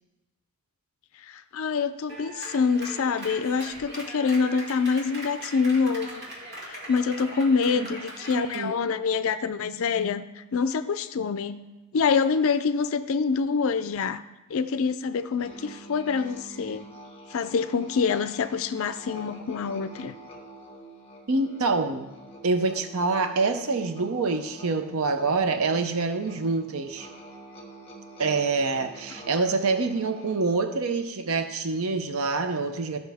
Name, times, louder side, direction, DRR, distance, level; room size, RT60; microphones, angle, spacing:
voice 1, 1.2-6.2 6.6-11.7 11.9-14.2 14.5-16.9 17.3-20.2, left 5 dB, 65° left, 12 dB, 0.4 m, -26 dB
Clapping, 2.1-8.6, right 1 dB, 50° right, 2.3 m, -40 dB
voice 2, 8.3-8.7 21.3-22.1 22.4-27.1 28.2-33.0, right 3 dB, 70° right, 8 dB, 0.7 m, -26 dB
Musical instrument, 15.4-30.9, right 1 dB, 25° left, 1.6 m, -47 dB
14.0 x 6.2 x 3.5 m, 1.0 s
head